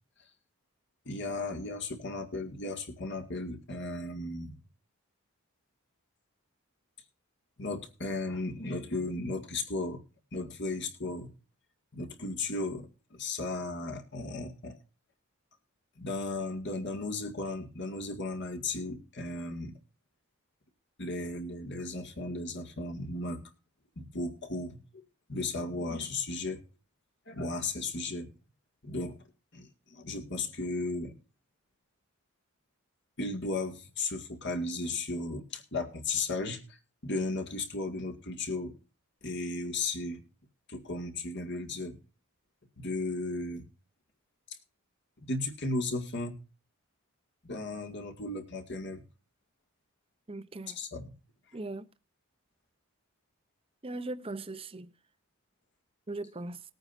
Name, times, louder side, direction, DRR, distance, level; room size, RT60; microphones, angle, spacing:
voice 1, 1.1-4.5 7.6-10.0 10.3-11.3 11.9-14.8 16.0-19.7 21.0-23.4 24.0-25.0 25.3-26.6 27.3-28.3 28.8-29.2 29.5-31.1 33.2-36.8 37.0-38.7 39.2-40.2 40.7-42.0 42.8-43.7 44.5-44.6 45.2-46.3 47.4-49.0 50.7-51.1, left 2 dB, 50° left, 2.0 m, -35 dB
voice 2, 50.3-50.8 51.5-51.9 53.8-54.9 56.1-56.6, right 2 dB, 25° right, 0.7 m, -39 dB
20.0 x 9.1 x 2.6 m
head